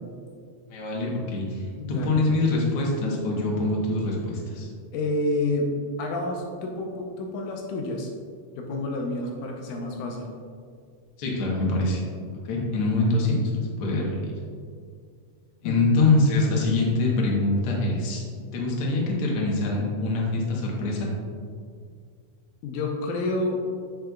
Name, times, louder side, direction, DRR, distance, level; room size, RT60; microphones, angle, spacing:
voice 1, 0.7-4.7 11.2-12.0 12.4-14.3 15.6-18.2 18.5-21.1, left 2 dB, 60° left, -2 dB, 1.5 m, -24 dB
voice 2, 1.8-2.2 4.9-8.1 8.6-10.3 15.6-15.9 22.6-23.6, left 2 dB, 80° left, 1 dB, 2.2 m, -29 dB
7.9 x 6.5 x 2.3 m, 2.1 s
omnidirectional pair, 3.9 m